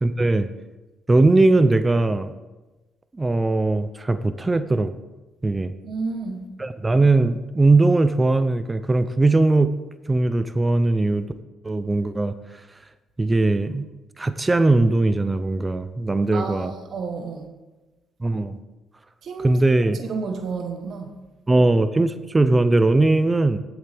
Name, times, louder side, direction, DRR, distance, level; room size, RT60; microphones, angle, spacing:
voice 1, 0.0-0.5 1.1-2.3 3.1-4.9 5.4-5.7 6.6-9.7 10.1-11.3 11.6-12.3 13.2-13.8 14.2-16.7 18.2-18.6 19.4-20.0 21.5-23.6, right 2 dB, 20° right, 12 dB, 0.5 m, -19 dB
voice 2, 5.8-6.5 16.3-17.5 19.2-19.6 20.0-21.1, right 4 dB, 65° right, 5 dB, 1.3 m, -31 dB
16.0 x 8.0 x 3.5 m, 1.1 s
cardioid pair, 90°, 0 cm